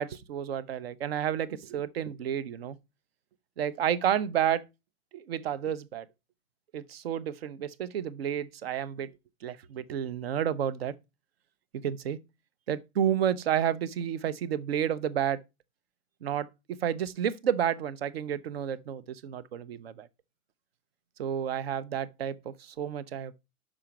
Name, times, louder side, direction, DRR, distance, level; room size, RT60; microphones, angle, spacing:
voice 1, 0.0-2.8 3.6-4.6 5.1-6.1 6.7-9.1 9.4-10.9 11.8-12.2 12.7-15.4 16.2-20.1 21.2-23.3, right 9 dB, 45° right, 0.5 m, -30 dB
6.3 x 4.9 x 5.7 m
supercardioid pair, 175°, 44 cm